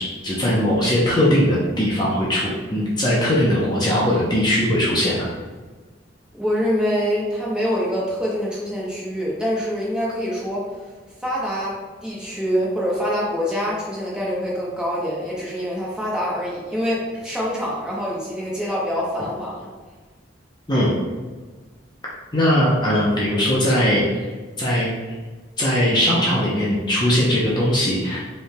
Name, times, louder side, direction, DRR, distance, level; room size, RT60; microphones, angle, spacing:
voice 1, 0.0-5.3 20.7-20.9 22.3-24.0 24.6-24.9 25.6-28.2, equal, 25° left, -6 dB, 0.7 m, -20 dB
voice 2, 6.4-10.7 11.2-19.7, equal, 5° right, -6 dB, 0.9 m, -25 dB
5.2 x 3.2 x 2.2 m, 1.4 s
head